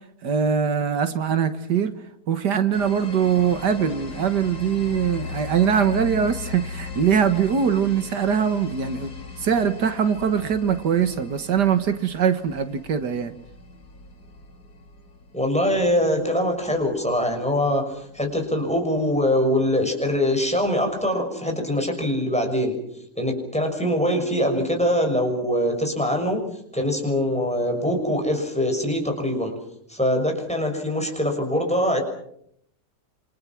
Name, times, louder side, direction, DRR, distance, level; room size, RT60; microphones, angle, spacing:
voice 1, 0.2-1.9 2.3-9.1 9.4-13.3, right 7 dB, 80° right, 9 dB, 2.1 m, -22 dB
sound 1, 2.7-18.2, left 3 dB, 75° left, 4.8 m, -38 dB
voice 2, 15.3-22.8 23.2-26.4 26.7-29.5 29.9-32.0, equal, 5° left, 3 dB, 6.2 m, -23 dB
28.0 x 26.5 x 6.1 m, 0.70 s
omnidirectional pair, 1.8 m